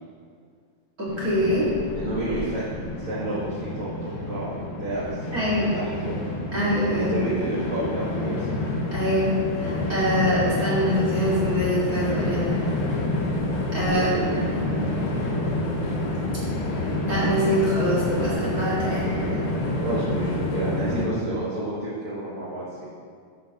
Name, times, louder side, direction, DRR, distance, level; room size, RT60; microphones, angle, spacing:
voice 1, 1.0-1.7 5.3-5.8 6.5-7.3 8.9-12.5 13.7-14.6 17.1-19.4, equal, 30° right, -9 dB, 1.8 m, -24 dB
Train, 1.1-21.0, left 1 dB, 85° left, 3.1 m, -28 dB
voice 2, 1.9-2.6 3.0-6.2 6.9-8.5 13.9-14.3 19.8-22.9, right 1 dB, 50° right, -9 dB, 1.7 m, -30 dB
12.5 x 6.8 x 2.9 m, 2.1 s
omnidirectional pair, 4.2 m